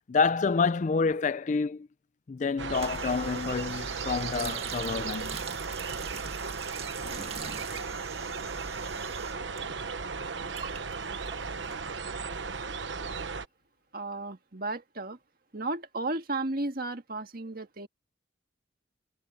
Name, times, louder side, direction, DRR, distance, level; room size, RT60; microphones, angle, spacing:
voice 1, 0.1-1.9 2.3-5.4, left 4 dB, 40° left, 0.4 m, -28 dB
sound 1, 2.6-13.5, right 5 dB, 75° right, 1.1 m, -36 dB
sound 2, 2.7-9.6 9.9-12.3, right 6 dB, 35° right, 2.0 m, -44 dB
sound 3, 7.0-8.0, left 1 dB, 85° left, 3.2 m, -50 dB
voice 2, 13.9-15.2 15.5-17.9, right 2 dB, 50° right, 1.8 m, -34 dB
head